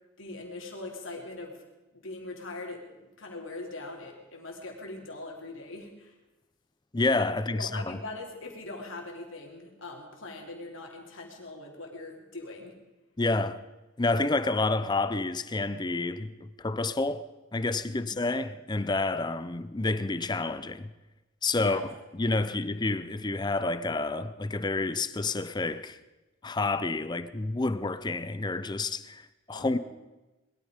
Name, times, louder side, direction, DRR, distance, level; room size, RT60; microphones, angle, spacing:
voice 1, 0.2-1.6 1.9-6.1 7.5-12.7 17.9-18.3 21.6-21.8 22.4-22.5 29.5-29.8, left 2 dB, 70° left, 3.3 m, -41 dB
voice 2, 6.9-8.0 13.2-13.6 14.0-17.3 17.5-20.9 21.4-21.8 22.1-26.0 26.4-29.8, left 3 dB, 20° left, 0.6 m, -29 dB
21.0 x 13.0 x 5.1 m
head